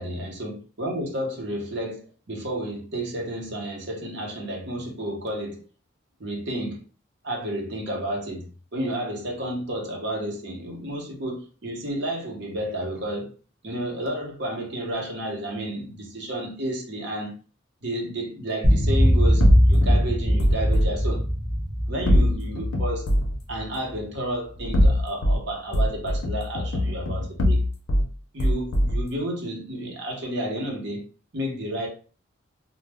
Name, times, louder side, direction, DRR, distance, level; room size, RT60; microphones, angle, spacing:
voice 1, 0.0-5.6 6.2-6.8 7.2-13.3 13.6-17.3 17.8-21.2 21.9-23.1 23.5-27.6 28.3-31.1 31.3-31.9, right 1 dB, 60° right, 0.9 m, -31 dB
sound 1, 18.6-24.0, equal, 25° right, 0.5 m, -22 dB
sound 2, 19.4-20.9 22.1-23.4 24.6-25.4 25.7-28.1 28.4-29.0, left 1 dB, 90° left, 0.5 m, -22 dB
2.2 x 2.0 x 3.3 m
head